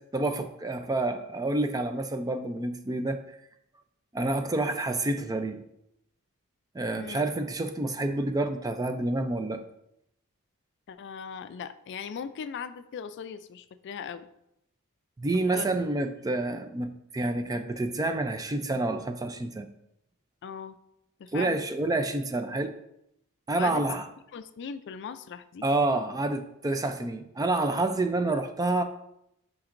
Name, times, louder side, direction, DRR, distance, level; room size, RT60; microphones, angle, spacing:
voice 1, 0.0-3.2 4.1-5.6 6.7-9.6 15.2-19.7 21.3-22.7 23.5-24.0 25.6-28.8, right 2 dB, 15° right, 8 dB, 0.4 m, -28 dB
voice 2, 6.9-7.3 10.9-14.3 15.5-15.8 20.4-20.8 21.2-21.7 23.6-23.8 24.3-25.7, left 6 dB, 55° left, 12 dB, 0.4 m, -39 dB
8.7 x 5.2 x 2.5 m, 0.80 s
head